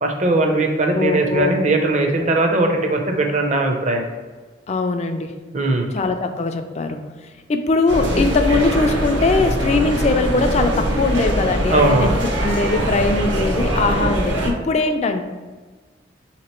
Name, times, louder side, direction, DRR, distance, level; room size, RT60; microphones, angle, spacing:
voice 1, 0.0-4.0 5.5-5.9 11.7-12.1, right 2 dB, 40° right, 3 dB, 0.5 m, -19 dB
voice 2, 0.9-1.5 4.7-5.3 5.9-7.0 7.5-12.1 12.4-15.2, left 3 dB, 35° left, 6 dB, 0.3 m, -20 dB
sound 1, 7.9-14.5, right 1 dB, 80° right, 0.8 m, -22 dB
3.6 x 2.9 x 4.3 m, 1.4 s
head